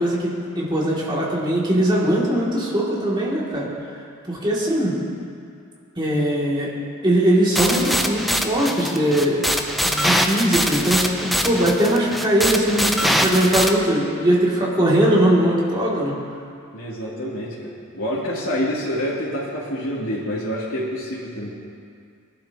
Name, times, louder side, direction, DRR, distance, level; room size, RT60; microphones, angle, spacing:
voice 1, 0.0-3.7 4.2-5.0 6.0-6.7 7.0-9.4 9.8-16.1, right 1 dB, 20° right, -5 dB, 2.5 m, -20 dB
sound 1, 7.6-13.7, equal, ahead, 0.6 m, -22 dB
voice 2, 16.7-21.5, equal, 85° left, -10 dB, 2.7 m, -27 dB
21.5 x 11.5 x 2.9 m, 2.3 s
head